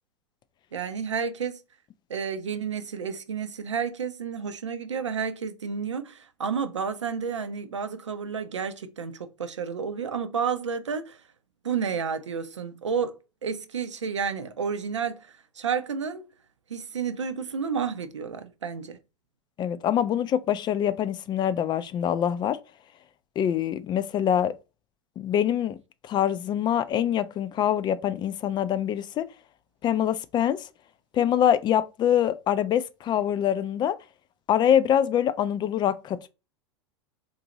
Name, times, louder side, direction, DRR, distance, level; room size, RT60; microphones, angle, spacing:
voice 1, 0.7-1.6 2.1-11.2 11.6-16.3 16.7-19.0, right 6 dB, 90° right, 0.5 m, -31 dB
voice 2, 19.6-22.6 23.4-24.5 25.2-25.8 26.0-29.3 29.8-30.6 31.1-34.0 34.5-36.3, left 10 dB, 30° left, 0.4 m, -24 dB
4.0 x 2.6 x 2.9 m
hypercardioid pair, 90°, 15 cm